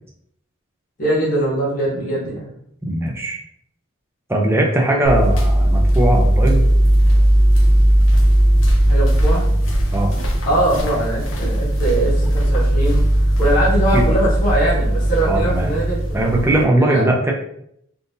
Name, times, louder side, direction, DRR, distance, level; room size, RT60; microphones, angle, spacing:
voice 1, 1.0-2.5 8.9-9.5 10.5-13.0 13.4-16.1 16.8-17.1, right 1 dB, 40° left, -7 dB, 1.1 m, -21 dB
voice 2, 2.8-3.4 4.3-6.7 9.9-10.1 13.9-14.0 15.2-15.7 16.1-17.3, right 1 dB, 10° right, 0 dB, 0.5 m, -19 dB
sound 1, 5.0-16.6, right 1 dB, 60° left, 0.6 m, -17 dB
3.7 x 2.5 x 2.6 m, 0.72 s
head